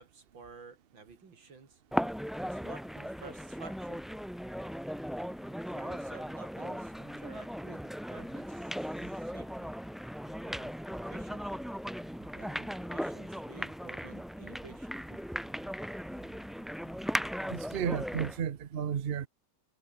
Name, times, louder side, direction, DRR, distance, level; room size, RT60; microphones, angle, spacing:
voice 1, 0.0-1.8 2.4-4.0 5.7-9.7 10.4-11.4 12.4-15.1, right 4 dB, 75° right, 4.0 m, -52 dB
sound 1, 1.9-18.4, equal, ahead, 0.7 m, -37 dB
voice 2, 17.5-19.3, right 8 dB, 50° right, 0.7 m, -33 dB
omnidirectional pair, 2.1 m